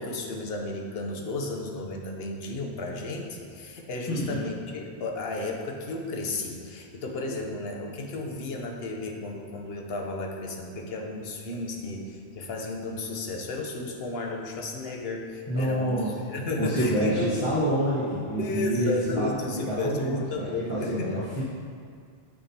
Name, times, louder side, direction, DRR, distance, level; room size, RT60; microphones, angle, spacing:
voice 1, 0.0-16.0 16.3-17.6 18.4-21.2, left 2 dB, 70° left, 1 dB, 1.0 m, -33 dB
voice 2, 4.1-4.4 15.5-16.1 16.6-21.4, equal, 30° left, -11 dB, 1.1 m, -27 dB
8.9 x 5.9 x 2.8 m, 2.1 s
omnidirectional pair, 1.1 m